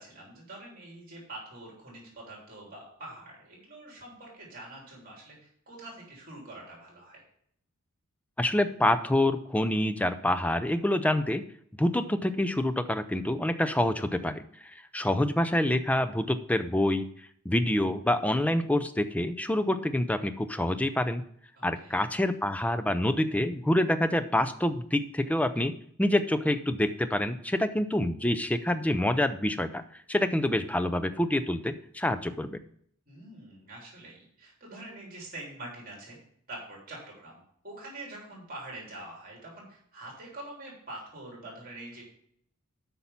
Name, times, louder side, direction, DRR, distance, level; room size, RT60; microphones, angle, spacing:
voice 1, 0.0-7.2 21.6-22.1 33.1-36.2 36.5-42.0, right 2 dB, 40° right, -3 dB, 3.3 m, -45 dB
voice 2, 8.4-11.4 11.8-14.4 14.9-17.1 17.5-21.2 21.6-25.7 26.0-29.8 30.1-32.6, left 1 dB, 5° left, 11 dB, 0.4 m, -26 dB
8.4 x 5.4 x 5.7 m, 0.66 s
head